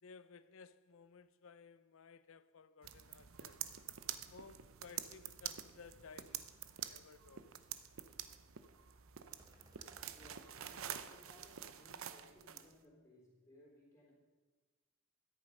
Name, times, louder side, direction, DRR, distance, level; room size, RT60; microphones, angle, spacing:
voice 1, 0.0-3.6 4.3-6.5 6.9-7.4, left 5 dB, 65° left, 0.6 m, -58 dB
sound 1, 2.8-12.7, right 10 dB, 70° right, 0.7 m, -48 dB
sound 2, 5.8-5.9 6.3-6.5 6.8-6.9 9.3-10.3, right 1 dB, 15° right, 1.2 m, -63 dB
voice 2, 10.1-14.1, left 1 dB, 15° left, 3.6 m, -63 dB
13.0 x 10.0 x 5.3 m
head